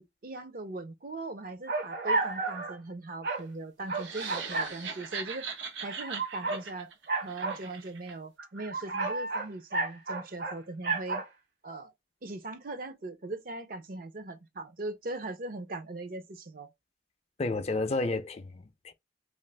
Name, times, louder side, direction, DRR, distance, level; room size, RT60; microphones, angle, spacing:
voice 1, 0.0-5.5 5.8-6.9 7.2-11.2 11.6-11.9 12.2-16.7, right 2 dB, 50° right, 0.5 m, -40 dB
sound 1, 1.7-2.7 3.2-3.4 3.9-4.7 5.8-6.6 7.1-7.6 8.4-10.6 10.8-11.3, right 3 dB, 65° right, 1.3 m, -31 dB
sound 2, 3.9-8.1, right 5 dB, 90° right, 0.8 m, -40 dB
voice 2, 17.4-18.9, left 2 dB, 35° left, 0.4 m, -31 dB
2.5 x 2.4 x 3.3 m
head